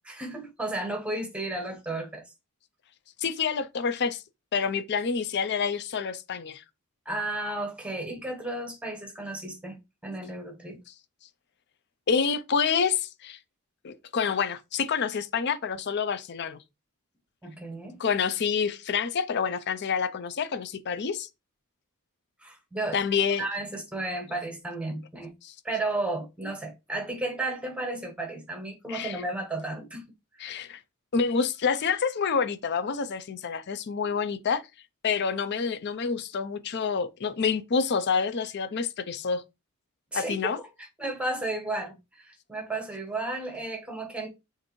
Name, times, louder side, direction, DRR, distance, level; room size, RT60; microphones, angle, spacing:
voice 1, 0.1-2.2 7.1-10.8 17.4-18.0 22.4-23.0 23.4-25.3 25.6-30.0 30.4-30.5 40.1-44.3, right 2 dB, 5° right, 1.0 m, -33 dB
voice 2, 3.2-4.2 4.5-6.6 12.1-13.4 13.8-16.6 18.0-21.3 22.9-23.4 25.4-25.5 28.9-29.2 30.4-30.8 31.1-34.6 35.0-39.4 40.1-40.6, left 6 dB, 50° left, 0.5 m, -28 dB
6.4 x 2.6 x 3.0 m
head